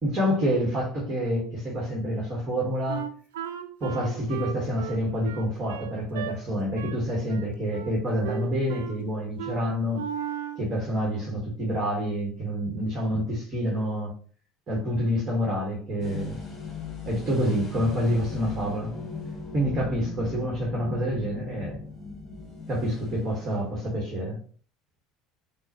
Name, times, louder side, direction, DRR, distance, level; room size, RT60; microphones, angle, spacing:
voice 1, 0.0-3.0 3.8-10.0 10.6-14.1 14.7-16.4 17.0-19.0 19.5-21.8 22.7-24.4, equal, 30° right, 1.6 m, -27 dB
Wind instrument woodwind instrument, 2.9-6.4 6.8-7.0 7.3-8.0 8.2-9.0 9.4-9.6 9.9-10.6, right 10 dB, 65° right, 0.6 m, -35 dB
sound 1, 16.0-23.9, left 4 dB, 20° left, 1.3 m, -39 dB
6.2 x 2.3 x 2.9 m
figure-of-eight pair, 65°, 0 cm